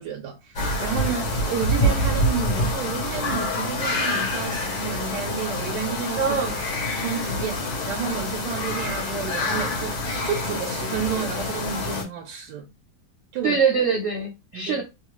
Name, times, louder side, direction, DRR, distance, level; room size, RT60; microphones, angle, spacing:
voice 1, 0.0-6.4 6.9-12.7 13.3-13.6 14.5-14.8, right 7 dB, 80° right, 1.2 m, -31 dB
sound 1, 0.6-12.0, left 1 dB, 80° left, 1.6 m, -26 dB
voice 2, 6.2-6.6 13.4-14.8, right 5 dB, 55° right, 0.8 m, -23 dB
3.4 x 2.3 x 3.0 m
omnidirectional pair, 1.9 m